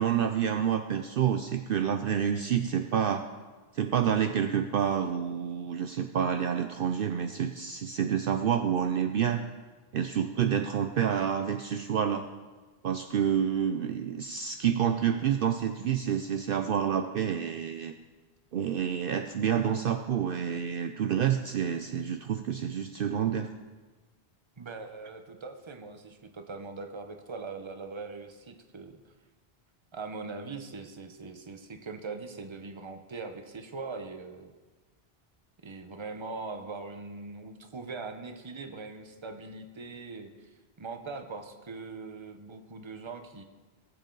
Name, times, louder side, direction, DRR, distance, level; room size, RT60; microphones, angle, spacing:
voice 1, 0.0-3.2 3.7-9.4 9.9-12.3 12.8-17.9 18.5-23.5, right 8 dB, 60° right, 7 dB, 0.7 m, -28 dB
voice 2, 24.6-29.0 29.9-34.5 35.6-40.5 40.8-43.4, right 4 dB, 30° right, 6 dB, 0.8 m, -41 dB
18.5 x 7.6 x 3.9 m, 1.3 s
omnidirectional pair, 1.1 m